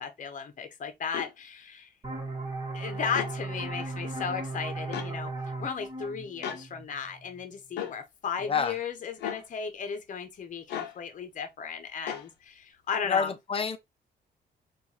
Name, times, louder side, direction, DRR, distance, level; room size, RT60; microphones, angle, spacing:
voice 1, 0.0-1.9 2.7-5.3 5.6-13.3, left 6 dB, 50° left, 0.9 m, -35 dB
sound 1, 1.1-1.3 3.1-3.3 4.9-5.1 6.4-6.6 7.8-8.0 9.2-9.4 10.7-11.0 12.1-12.3, left 9 dB, 90° left, 0.7 m, -35 dB
sound 2, 2.0-7.4, right 2 dB, 25° right, 1.6 m, -37 dB
voice 2, 8.4-8.8 13.1-13.8, left 6 dB, 35° left, 0.7 m, -28 dB
4.5 x 2.6 x 2.8 m
cardioid pair, 105°, 17 cm